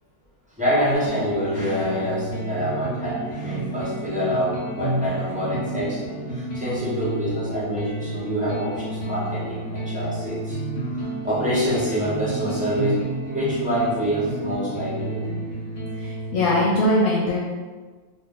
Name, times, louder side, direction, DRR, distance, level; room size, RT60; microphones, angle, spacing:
voice 1, 0.6-10.6 10.9-13.1 13.3-15.3, equal, 5° right, -10 dB, 0.8 m, -26 dB
sound 1, 0.9-16.9, right 2 dB, 60° left, 1.1 m, -31 dB
voice 2, 16.0-17.4, left 1 dB, 85° left, -5 dB, 1.1 m, -21 dB
2.6 x 2.5 x 3.6 m, 1.4 s
omnidirectional pair, 1.5 m